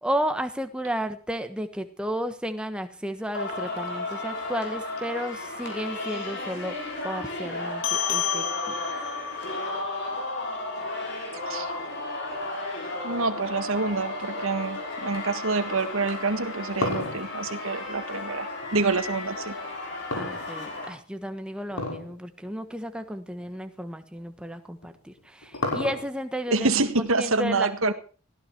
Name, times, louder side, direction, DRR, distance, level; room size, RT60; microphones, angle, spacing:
voice 1, 0.0-6.7 7.0-8.7 20.1-26.7 27.0-27.9, equal, 5° right, 8 dB, 1.3 m, -33 dB
Singing, 3.3-20.9, left 2 dB, 50° left, 6.1 m, -34 dB
sound 1, 7.8-12.6, left 8 dB, 70° left, 2.7 m, -33 dB
voice 2, 13.0-19.5 26.5-27.9, right 3 dB, 75° right, 10 dB, 1.5 m, -27 dB
sound 2, 16.3-18.7 20.1-21.0 21.7-22.1 22.5-22.6 23.3-23.5 24.8-26.3, left 2 dB, 85° left, 5.9 m, -31 dB
17.5 x 16.0 x 4.6 m, 0.38 s
head